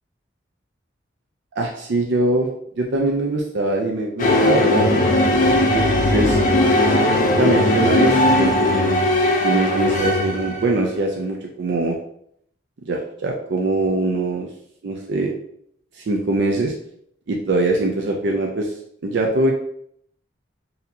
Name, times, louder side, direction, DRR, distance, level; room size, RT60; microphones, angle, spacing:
voice 1, 1.6-2.5 2.8-4.9 5.7-5.8 6.1-6.4 7.4-9.0 9.2-12.0 12.9-14.5 14.8-15.3 15.9-16.7 17.3-18.7 19.0-19.5, right 2 dB, 70° right, 0 dB, 0.4 m, -22 dB
sound 1, 4.2-10.8, left 1 dB, 40° left, 0.5 m, -18 dB
4.1 x 2.7 x 2.7 m, 0.70 s
head